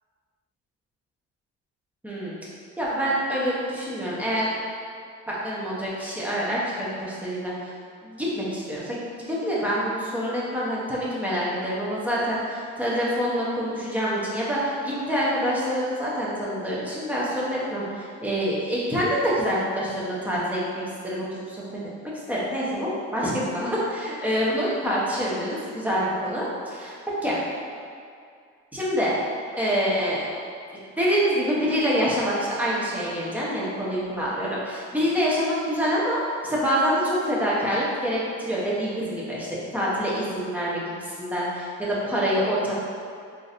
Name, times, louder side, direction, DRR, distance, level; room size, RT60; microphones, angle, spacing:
voice 1, 2.0-2.3 2.8-4.5 5.3-7.5 8.0-9.0 9.3-21.6 22.3-27.4 28.7-29.1 29.6-30.2 31.0-42.8, equal, 5° right, -7 dB, 0.9 m, -26 dB
3.8 x 2.7 x 2.5 m, 2.2 s
cardioid pair, 90°, 30 cm